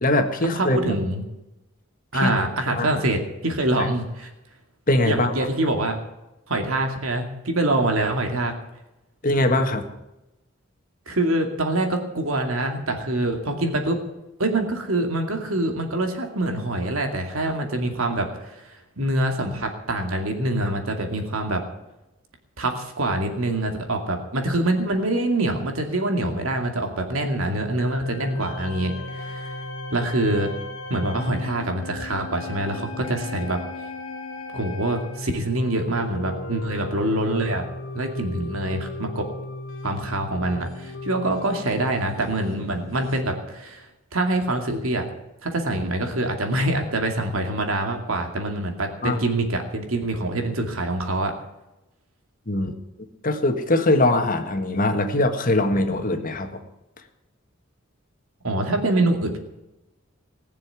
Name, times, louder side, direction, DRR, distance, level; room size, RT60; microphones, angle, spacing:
voice 1, 0.0-0.8 2.2-2.3 2.7-2.9 3.7-3.9 4.9-5.5 9.2-9.8 49.0-49.2 52.5-52.8 53.2-56.6, left 2 dB, 40° left, 6 dB, 1.7 m, -22 dB
voice 2, 0.5-1.2 2.1-4.3 5.1-6.0 6.5-8.5 11.1-14.0 14.4-21.6 22.6-29.5 29.9-30.5 30.9-33.6 34.5-37.7 37.9-39.3 39.8-43.9 44.1-45.0 45.4-51.3 58.4-59.4, right 1 dB, 85° right, 4 dB, 2.5 m, -25 dB
sound 1, 27.5-43.2, left 2 dB, 65° left, 1.3 m, -36 dB
20.0 x 6.9 x 9.7 m, 0.94 s
head